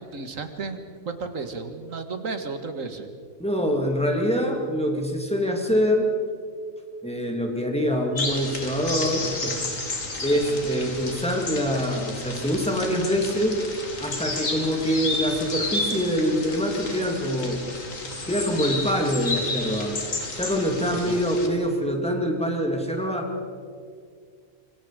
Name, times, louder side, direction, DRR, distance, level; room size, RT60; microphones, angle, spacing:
voice 1, 0.1-0.8 1.1-3.1 10.3-10.7 21.1-21.2, right 4 dB, 70° right, 7 dB, 2.0 m, -33 dB
voice 2, 3.4-6.1 7.0-9.6 10.2-13.6 14.0-17.6 18.3-20.0 20.3-23.3, equal, 5° left, 1 dB, 2.8 m, -25 dB
sound 1, 8.2-21.5, left 2 dB, 70° left, 2.9 m, -32 dB
25.5 x 25.0 x 5.1 m, 2.1 s
omnidirectional pair, 1.4 m